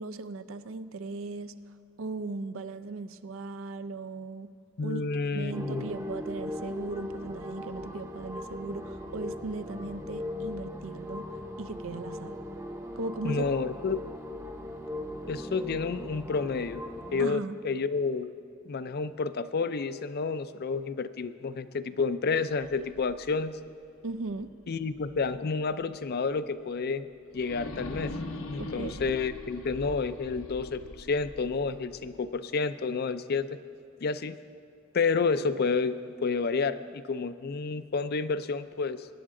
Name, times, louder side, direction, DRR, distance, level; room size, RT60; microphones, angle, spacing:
voice 1, 0.0-4.5 4.8-12.4 13.0-13.5 17.2-17.6 24.0-24.6 28.6-29.0, right 3 dB, 70° right, 12 dB, 0.5 m, -38 dB
voice 2, 4.8-5.9 13.2-14.0 15.3-16.8 17.1-18.3 18.7-23.6 24.7-28.1 28.5-33.5 34.0-34.4 34.9-36.0 36.2-39.1, left 4 dB, 50° left, 12 dB, 0.5 m, -30 dB
sound 1, 5.5-17.3, left 1 dB, 15° right, 0.6 m, -39 dB
sound 2, 22.4-25.4 25.8-25.9 27.3-32.4, left 1 dB, 80° left, 1.1 m, -42 dB
22.0 x 9.9 x 3.8 m, 2.4 s
head